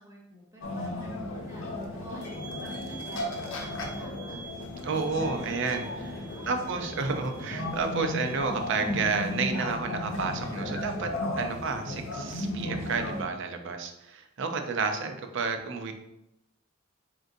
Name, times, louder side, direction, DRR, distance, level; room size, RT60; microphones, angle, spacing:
voice 1, 0.0-4.5 6.3-7.0 11.4-11.7, equal, 15° right, -3 dB, 0.8 m, -49 dB
sound 1, 0.6-13.2, left 1 dB, 70° left, 0.7 m, -35 dB
sound 2, 1.5-8.4, left 2 dB, 40° left, 0.4 m, -47 dB
sound 3, 2.2-9.6, right 5 dB, 85° right, 1.0 m, -48 dB
voice 2, 4.8-15.9, right 4 dB, 60° right, 5 dB, 0.5 m, -31 dB
3.7 x 3.6 x 2.6 m, 0.86 s
head